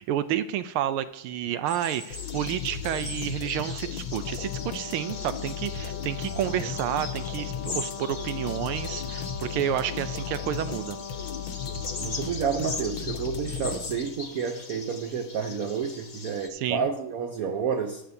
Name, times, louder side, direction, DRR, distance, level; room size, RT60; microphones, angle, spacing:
voice 1, 0.0-11.0 16.5-16.9, right 11 dB, 90° right, 12 dB, 1.5 m, -30 dB
sound 1, 1.7-16.5, left 3 dB, 35° left, 0.7 m, -41 dB
sound 2, 2.1-14.3, left 8 dB, 70° left, 1.5 m, -36 dB
Brass instrument, 4.2-12.9, left 6 dB, 85° left, 1.7 m, -41 dB
voice 2, 12.0-18.0, right 6 dB, 60° right, 4 dB, 1.0 m, -30 dB
14.5 x 11.5 x 2.8 m, 0.78 s
omnidirectional pair, 2.3 m